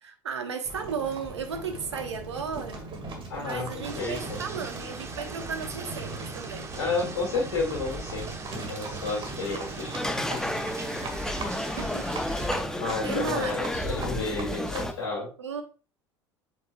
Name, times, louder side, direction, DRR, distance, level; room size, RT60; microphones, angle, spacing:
voice 1, 0.0-2.8 3.4-6.7 11.8-12.1 12.6-13.6 15.4-15.6, right 6 dB, 75° right, 1.1 m, -35 dB
Livestock farm animals working animals, 0.6-15.0, right 2 dB, 35° right, 2.0 m, -38 dB
voice 2, 3.3-4.4 6.7-10.4 12.8-15.3, left 3 dB, 65° left, 2.6 m, -31 dB
sound 1, 3.8-12.5, right 3 dB, 20° right, 1.1 m, -41 dB
sound 2, 9.9-14.9, left 1 dB, 5° left, 0.7 m, -32 dB
7.9 x 6.1 x 2.4 m
figure-of-eight pair, 70°, 15 cm